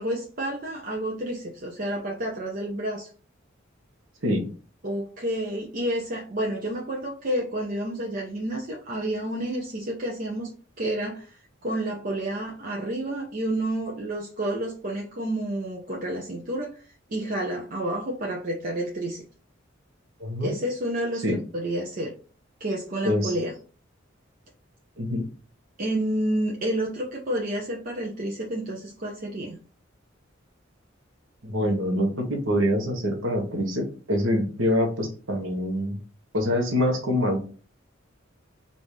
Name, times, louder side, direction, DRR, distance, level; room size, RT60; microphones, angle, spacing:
voice 1, 0.0-3.1 4.8-10.5 10.8-16.8 17.1-19.2 20.4-22.1 22.6-23.5 25.8-29.6, right 1 dB, 45° right, -1 dB, 0.7 m, -30 dB
voice 2, 20.2-20.5 21.2-21.4 23.0-23.4 25.0-25.3 31.4-36.0 36.3-37.4, left 1 dB, 85° right, 4 dB, 1.1 m, -25 dB
5.2 x 2.6 x 3.2 m, 0.38 s
head